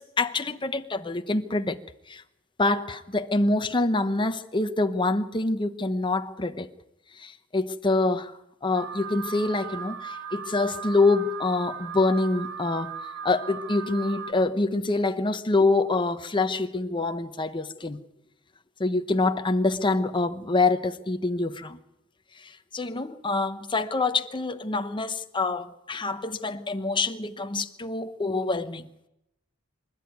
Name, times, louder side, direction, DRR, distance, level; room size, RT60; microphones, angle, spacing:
voice 1, 0.0-1.8 2.1-2.2 2.6-6.7 7.2-12.9 13.2-18.0 18.8-21.8 22.4-28.9, left 3 dB, 25° left, 1.0 m, -26 dB
Alarm, 8.7-14.3, right 6 dB, 70° right, 2.1 m, -37 dB
25.5 x 12.5 x 9.5 m
head